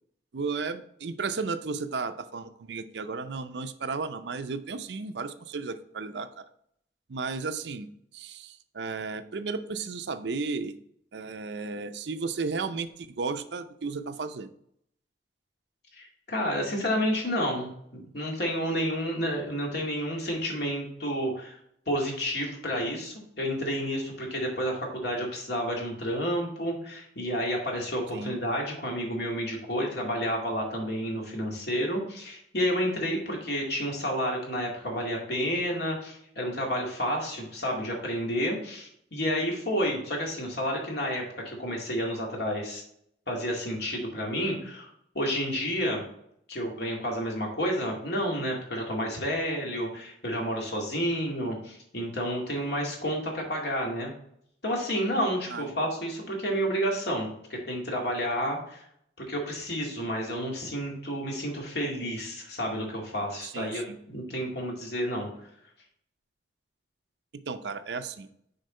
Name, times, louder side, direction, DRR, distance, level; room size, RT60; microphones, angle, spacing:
voice 1, 0.3-6.4 7.1-7.9 8.1-10.8 11.1-14.5 28.1-28.4 55.5-55.7 63.5-64.0 67.5-68.3, right 4 dB, 75° right, 10 dB, 0.6 m, -34 dB
voice 2, 15.9-21.6 21.9-42.8 43.3-44.9 45.1-46.0 46.5-54.1 54.6-58.9 59.3-65.3, equal, 70° left, -1 dB, 2.2 m, -30 dB
6.5 x 4.6 x 4.4 m, 0.70 s
head